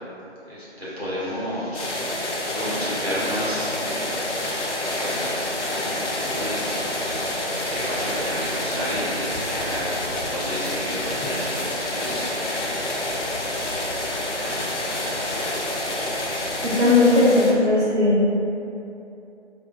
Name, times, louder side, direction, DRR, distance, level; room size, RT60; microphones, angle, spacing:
voice 1, 0.5-1.9 2.5-4.5 5.0-6.7 7.7-9.9 10.2-12.4 13.2-13.3 14.0-14.5, equal, 60° right, -10 dB, 1.2 m, -31 dB
sound 1, 1.7-17.5, left 1 dB, 85° left, 0.6 m, -28 dB
voice 2, 16.6-18.2, left 2 dB, 80° right, -11 dB, 0.8 m, -17 dB
3.6 x 2.0 x 2.4 m, 2.7 s
figure-of-eight pair, 175°, 35 cm